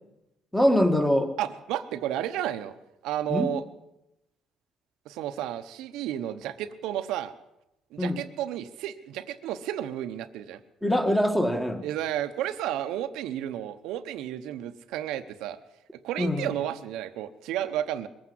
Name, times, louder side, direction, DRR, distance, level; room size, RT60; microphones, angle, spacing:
voice 1, 0.5-1.3 3.3-3.5 8.0-8.2 10.8-11.8 16.2-16.5, equal, 5° left, 7 dB, 1.5 m, -23 dB
voice 2, 1.4-2.7 3.0-3.6 5.1-7.3 7.9-10.6 11.8-15.6 16.0-18.1, right 11 dB, 85° right, 10 dB, 0.9 m, -32 dB
21.5 x 8.7 x 7.7 m, 0.89 s
cardioid pair, 130°, 0 cm